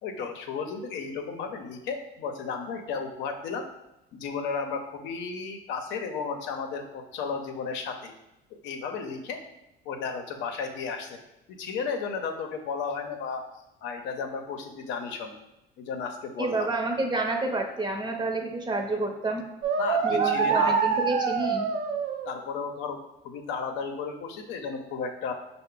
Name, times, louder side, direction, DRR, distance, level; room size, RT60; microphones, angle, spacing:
voice 1, 0.0-3.7 4.1-8.1 8.5-9.4 9.9-11.2 11.5-13.4 13.8-15.3 15.8-16.7 19.8-20.8 22.3-25.3, left 5 dB, 70° left, 4 dB, 0.7 m, -34 dB
voice 2, 16.4-19.4 20.0-21.7, right 2 dB, 20° right, 2 dB, 0.8 m, -29 dB
sound 1, 19.6-22.4, right 6 dB, 70° right, 0.6 m, -26 dB
5.4 x 2.1 x 3.7 m, 0.91 s
supercardioid pair, 95°, 20 cm